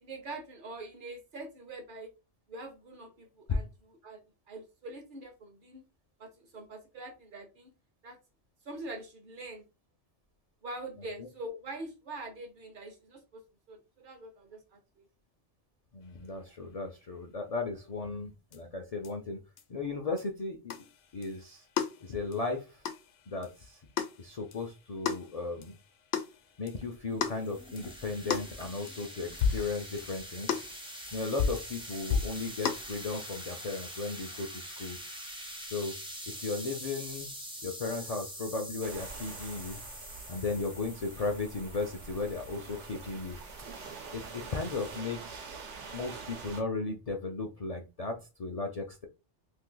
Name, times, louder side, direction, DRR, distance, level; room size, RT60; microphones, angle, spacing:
voice 1, 0.0-2.1 2.5-3.7 4.0-4.2 4.5-5.8 6.2-7.7 8.0-8.2 8.7-9.6 10.6-13.4 13.7-15.0, right 2 dB, 55° right, 5 dB, 0.8 m, -44 dB
voice 2, 11.0-11.3 15.9-19.4 19.7-20.8 21.1-21.7 22.0-22.9 23.3-23.8 24.2-25.8 26.6-30.7 31.1-35.1 35.7-36.0 36.3-37.3 37.6-39.8 40.3-43.4 44.1-45.7 45.9-49.1, left 3 dB, 50° left, 3 dB, 0.4 m, -36 dB
sound 1, 18.5-18.6 19.0-19.1 19.6-19.7 20.2-20.3 20.7-32.9, left 6 dB, 70° left, 0.8 m, -36 dB
sound 2, 26.8-45.0, equal, 5° right, 0.4 m, -45 dB
sound 3, 38.8-46.6, right 4 dB, 85° right, 1.1 m, -46 dB
2.6 x 2.6 x 3.8 m, 0.27 s
omnidirectional pair, 1.2 m